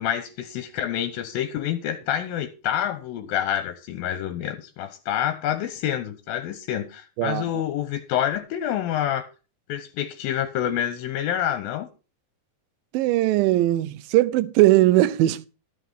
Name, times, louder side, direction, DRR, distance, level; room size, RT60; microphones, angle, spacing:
voice 1, 0.0-9.3 9.7-11.9, left 10 dB, 75° left, 2.4 m, -27 dB
voice 2, 12.9-15.5, right 16 dB, 80° right, 2.1 m, -19 dB
13.0 x 5.9 x 5.6 m
omnidirectional pair, 4.7 m